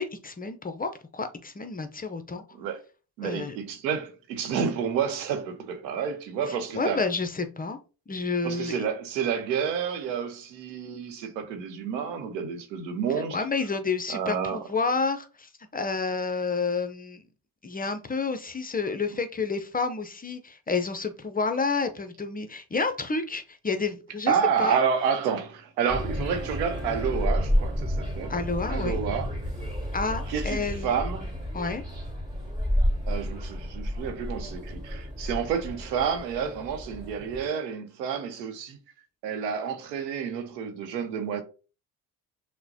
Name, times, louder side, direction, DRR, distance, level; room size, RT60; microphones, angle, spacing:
voice 1, 0.0-2.4 3.2-3.6 6.5-7.8 8.1-8.9 13.3-17.2 17.6-24.8 28.3-29.0 29.9-30.9 31.5-31.8, left 4 dB, 20° left, 0.5 m, -30 dB
voice 2, 3.2-7.0 8.4-13.4 14.1-14.6 24.3-28.4 28.7-29.3 30.3-31.3 33.1-38.8 39.2-41.4, right 7 dB, 90° right, 0.8 m, -29 dB
sound 1, 25.9-37.5, equal, 15° right, 2.2 m, -31 dB
5.9 x 2.2 x 2.7 m
hypercardioid pair, 55°, 49 cm